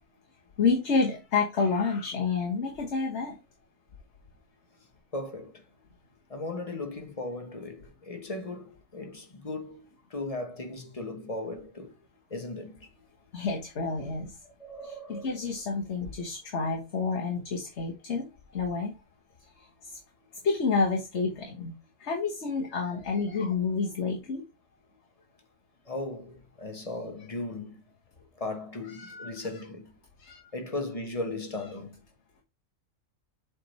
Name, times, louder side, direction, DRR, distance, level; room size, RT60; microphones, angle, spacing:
voice 1, 0.6-3.3 13.3-14.4 14.8-18.2 18.5-18.9 19.8-20.0 20.4-21.7 22.0-24.4 28.9-29.5 30.2-30.5, left 4 dB, 55° left, 1.5 m, -29 dB
voice 2, 5.1-5.6 6.3-12.0 12.3-12.9 14.4-15.4 25.8-27.8 28.3-30.0 30.5-32.0, left 2 dB, 30° left, 1.2 m, -37 dB
7.4 x 3.7 x 4.1 m
omnidirectional pair, 1.4 m